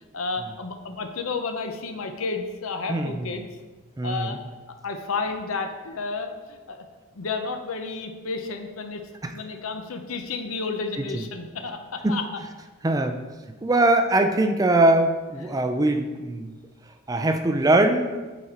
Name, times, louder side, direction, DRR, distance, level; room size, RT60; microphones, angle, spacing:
voice 1, 0.1-3.5 4.0-4.4 4.8-6.8 7.1-12.2 15.4-15.6, left 4 dB, 85° left, 6 dB, 0.8 m, -31 dB
voice 2, 2.9-3.3 4.0-4.4 9.2-9.3 11.0-11.2 12.0-12.2 12.8-13.2 13.6-16.6 17.1-18.2, right 2 dB, 15° right, 7 dB, 0.4 m, -22 dB
8.5 x 4.2 x 4.4 m, 1.3 s
head